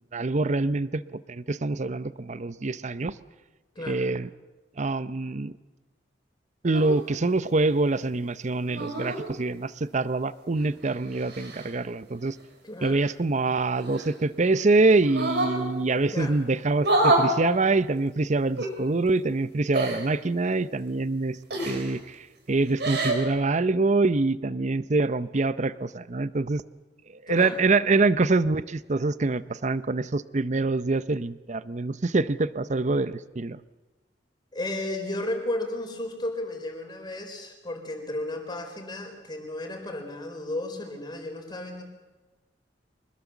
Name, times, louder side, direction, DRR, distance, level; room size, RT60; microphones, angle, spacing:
voice 1, 0.1-3.1 3.9-4.3 4.8-5.5 6.6-12.4 12.8-21.4 21.6-22.2 22.5-26.6 27.3-33.6, right 3 dB, 40° right, 16 dB, 0.7 m, -25 dB
voice 2, 3.8-4.1 12.6-13.1 16.1-16.4 27.3-27.6 34.5-41.8, left 1 dB, 25° left, 4 dB, 4.2 m, -34 dB
sound 1, 6.7-7.0 8.7-9.2 10.6-11.7 13.8-14.5 15.0-15.6 16.8-17.3 18.5-18.7 19.7-20.1 21.5-22.0 22.7-23.2, right 2 dB, 65° right, 4.3 m, -27 dB
25.0 x 20.5 x 7.2 m, 1.2 s
head